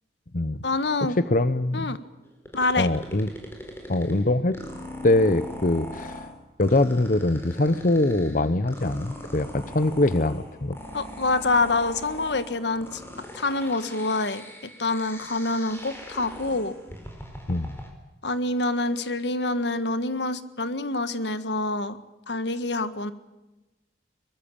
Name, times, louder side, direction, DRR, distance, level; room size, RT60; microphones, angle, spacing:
voice 1, 0.6-1.2 1.7-2.0 2.5-2.9 10.9-13.0 13.3-16.7 18.2-22.0 22.3-23.1, left 2 dB, 80° left, 12 dB, 1.6 m, -26 dB
voice 2, 1.2-2.0 2.8-3.3 3.9-4.6 5.0-6.2 6.6-10.8 17.5-17.8, left 2 dB, 50° left, 13 dB, 0.8 m, -23 dB
sound 1, 2.5-17.9, left 1 dB, 15° left, 4.7 m, -41 dB
23.0 x 21.0 x 8.6 m, 1.0 s
head